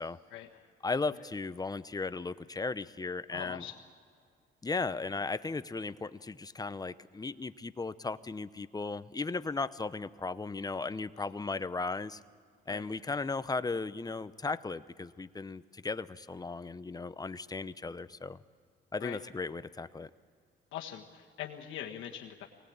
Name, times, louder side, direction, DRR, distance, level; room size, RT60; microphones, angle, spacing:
voice 1, 0.3-0.7 1.1-1.2 3.3-3.8 11.1-11.4 12.7-12.9 19.0-19.2 20.7-22.5, left 10 dB, 85° left, -2 dB, 1.6 m, -43 dB
voice 2, 0.8-3.6 4.6-12.2 12.7-18.4 18.9-20.1, left 3 dB, 20° left, 14 dB, 0.7 m, -36 dB
23.5 x 18.5 x 8.6 m, 2.1 s
cardioid pair, 90°, 20 cm